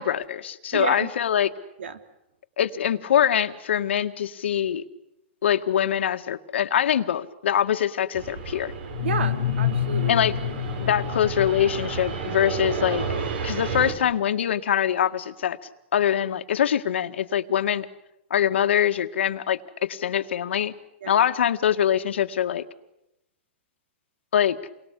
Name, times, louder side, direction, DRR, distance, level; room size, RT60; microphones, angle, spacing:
voice 1, 0.0-1.5 2.6-4.8 5.4-8.7 10.1-10.3 10.8-13.0 13.4-15.6 15.9-17.9 18.3-20.7 21.1-22.6 24.3-24.6, left 9 dB, 85° left, 7 dB, 1.9 m, -23 dB
voice 2, 0.7-1.1 1.8-2.0 9.0-10.2 21.0-21.2, right 5 dB, 85° right, 9 dB, 3.1 m, -31 dB
Fixed-wing aircraft airplane, 8.1-13.9, right 5 dB, 65° right, 5.8 m, -32 dB
sound 1, 8.9-12.6, left 11 dB, 65° left, 1.4 m, -28 dB
29.5 x 23.5 x 8.4 m, 0.85 s
hypercardioid pair, 160°, 6 cm